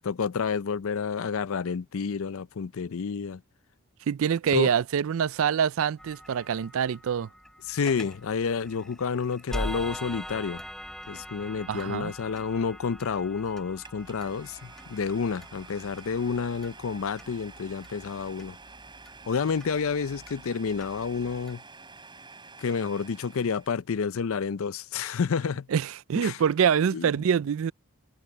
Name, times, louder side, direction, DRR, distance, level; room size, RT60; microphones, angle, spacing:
voice 1, 0.0-3.4 4.5-4.7 7.7-10.6 11.1-18.6 19.3-21.6 22.6-25.7 26.2-26.4 26.9-27.1, left 5 dB, 70° left, 0.5 m, -29 dB
voice 2, 4.1-7.3 11.7-12.1 25.7-27.7, right 7 dB, 65° right, 0.4 m, -25 dB
sound 1, 6.0-21.5, equal, ahead, 5.4 m, -43 dB
Domestic sounds home sounds, 13.8-23.8, right 4 dB, 20° right, 6.9 m, -49 dB
head